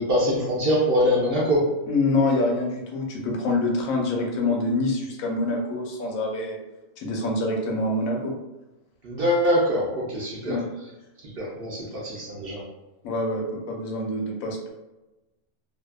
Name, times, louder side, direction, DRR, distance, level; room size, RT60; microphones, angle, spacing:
voice 1, 0.0-1.6 9.0-10.6 11.4-12.6, equal, 60° right, -5 dB, 0.6 m, -23 dB
voice 2, 1.9-6.6 7.0-8.4 10.4-10.6 13.0-14.7, left 2 dB, 75° left, 0 dB, 1.0 m, -26 dB
2.7 x 2.2 x 2.2 m, 1.0 s
omnidirectional pair, 1.5 m